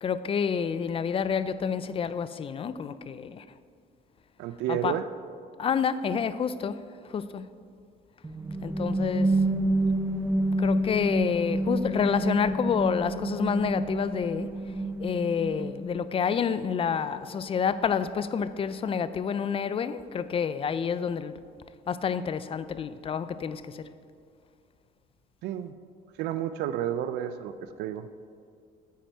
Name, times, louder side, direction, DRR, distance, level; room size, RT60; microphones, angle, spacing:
voice 1, 0.0-3.4 4.7-5.0 5.6-6.8 7.1-7.5 8.6-9.4 10.6-14.5 15.0-21.3 21.9-23.9, left 6 dB, 35° left, 0.4 m, -28 dB
voice 2, 4.4-5.0 25.4-25.7 26.2-28.1, right 10 dB, 85° right, 0.4 m, -31 dB
sound 1, 8.2-16.0, right 1 dB, 15° right, 0.7 m, -28 dB
9.4 x 8.9 x 4.6 m
cardioid pair, 110°, 17 cm